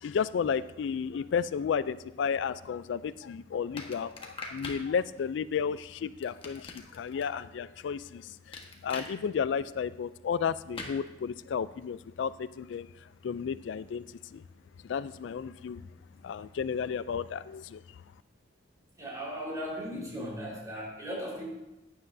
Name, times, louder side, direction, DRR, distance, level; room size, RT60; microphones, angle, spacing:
voice 1, 0.0-12.9 13.2-14.0 14.3-14.4 14.8-15.8 16.2-17.8, left 6 dB, 85° left, 16 dB, 0.3 m, -33 dB
sound 1, 3.8-4.8 6.2-7.2 8.5-9.1 10.8-11.0, left 3 dB, 30° left, 1.3 m, -41 dB
voice 2, 19.0-21.5, equal, 20° right, -4 dB, 4.3 m, -37 dB
15.0 x 9.7 x 2.7 m, 0.97 s
head